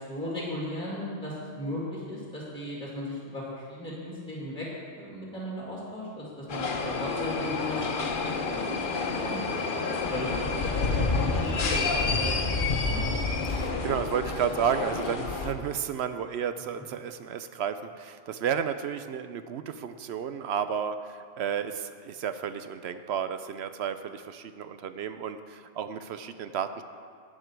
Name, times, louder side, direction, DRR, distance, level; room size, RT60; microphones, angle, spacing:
voice 1, 0.1-4.7 5.0-13.0, equal, 5° left, -5 dB, 2.3 m, -37 dB
sound 1, 6.5-15.5, left 4 dB, 50° left, 0.9 m, -29 dB
voice 2, 13.5-26.8, right 8 dB, 70° right, 10 dB, 0.8 m, -32 dB
12.5 x 8.8 x 4.5 m, 2.1 s
omnidirectional pair, 1.2 m